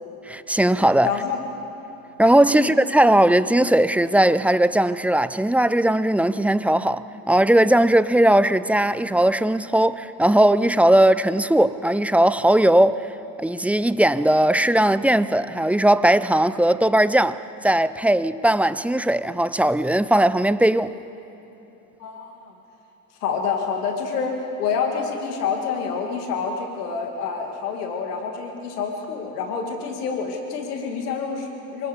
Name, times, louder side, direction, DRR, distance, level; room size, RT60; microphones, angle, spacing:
voice 1, 0.3-1.1 2.2-13.1 13.4-20.9, right 1 dB, 5° right, 0.5 m, -18 dB
voice 2, 1.0-1.4 2.5-2.7 22.0-22.5 23.2-24.3 24.6-31.9, left 6 dB, 90° left, 2.3 m, -27 dB
25.5 x 22.0 x 5.1 m
hypercardioid pair, 65°, 45 cm